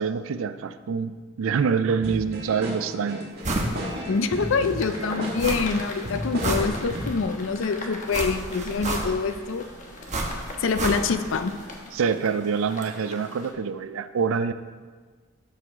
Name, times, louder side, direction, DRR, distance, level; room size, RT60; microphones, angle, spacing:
voice 1, 0.0-3.3 11.9-14.5, right 6 dB, 75° right, 12 dB, 0.4 m, -26 dB
sound 1, 2.0-7.2, equal, 50° right, 1.5 m, -33 dB
sound 2, 3.4-3.8 4.1-4.2 5.4-5.9 6.2-7.2 8.1-9.4 10.1-11.3 11.6-11.7, right 2 dB, 35° right, 1.0 m, -29 dB
voice 2, 4.1-9.7 10.6-11.5, left 4 dB, 65° left, 10 dB, 0.5 m, -25 dB
sound 3, 4.2-13.5, left 2 dB, 40° left, 1.0 m, -41 dB
12.5 x 4.8 x 3.6 m, 1.5 s
head